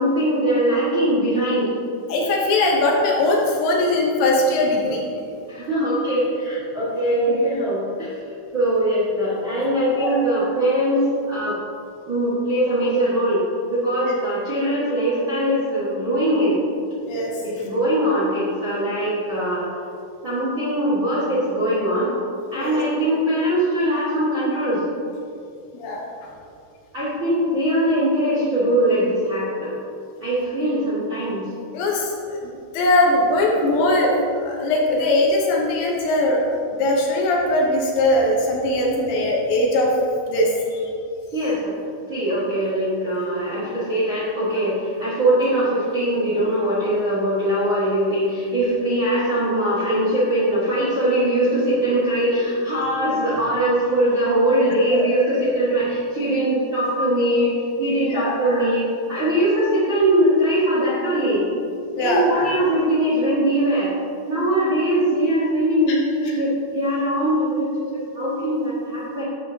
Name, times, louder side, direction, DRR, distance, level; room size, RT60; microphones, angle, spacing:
voice 1, 0.0-1.7 5.5-8.2 8.5-11.0 11.3-11.6 12.1-13.4 13.7-16.6 17.4-19.6 20.2-22.1 22.5-24.8 26.9-29.7 30.2-31.5 41.3-41.7 42.1-57.5 57.8-61.5 62.0-63.9 64.2-69.2, right 1 dB, 80° right, -11 dB, 1.1 m, -21 dB
voice 2, 2.1-5.0 10.0-10.1 14.1-14.2 17.0-17.3 22.5-22.8 25.7-26.3 31.7-34.1 34.4-36.4 36.7-39.9 40.3-40.9 54.9-55.1 58.1-58.4 62.0-62.2 65.9-66.0, left 1 dB, 75° left, -2 dB, 3.1 m, -20 dB
11.0 x 7.0 x 2.8 m, 2.5 s
omnidirectional pair, 5.5 m